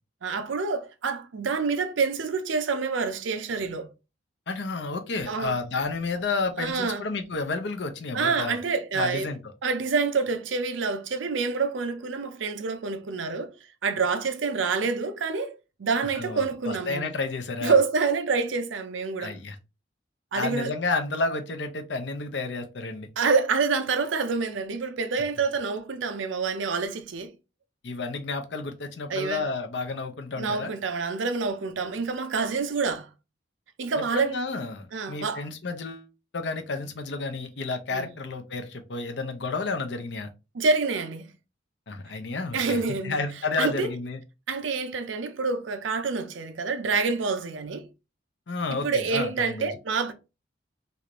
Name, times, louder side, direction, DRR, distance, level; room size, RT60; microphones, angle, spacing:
voice 1, 0.2-3.9 5.3-5.6 6.6-7.0 8.1-9.3 9.6-13.5 13.8-17.1 17.6-19.3 20.3-20.7 23.2-27.3 29.1-29.4 30.4-33.1 33.8-34.4 34.9-35.4 37.9-38.1 40.5-41.3 42.5-43.2 43.6-43.9 44.5-47.9 48.7-50.1, right 4 dB, 85° right, 0.6 m, -27 dB
voice 2, 4.5-8.6 8.9-9.4 16.0-17.7 19.2-19.6 20.3-23.1 27.8-30.7 34.0-36.1 36.3-40.3 41.9-44.2 48.5-49.7, left 3 dB, 65° left, 0.6 m, -31 dB
3.2 x 2.5 x 2.9 m
head